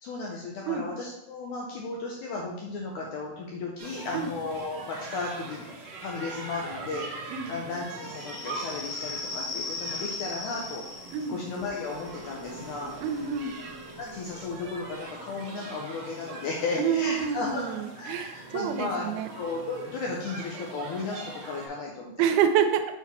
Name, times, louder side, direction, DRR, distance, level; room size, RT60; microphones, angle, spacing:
voice 1, 0.0-5.7 6.0-10.9 11.3-12.9 14.0-19.1 19.4-22.3, left 3 dB, 75° left, -2 dB, 1.8 m, -35 dB
sound 1, 3.8-21.7, right 3 dB, 65° right, 1.7 m, -42 dB
sound 2, 8.0-15.3, left 3 dB, 55° left, 2.6 m, -39 dB
voice 2, 13.0-13.5 16.8-19.3 22.2-22.9, right 8 dB, 90° right, 8 dB, 2.5 m, -27 dB
6.0 x 4.1 x 4.2 m, 0.85 s
omnidirectional pair, 4.3 m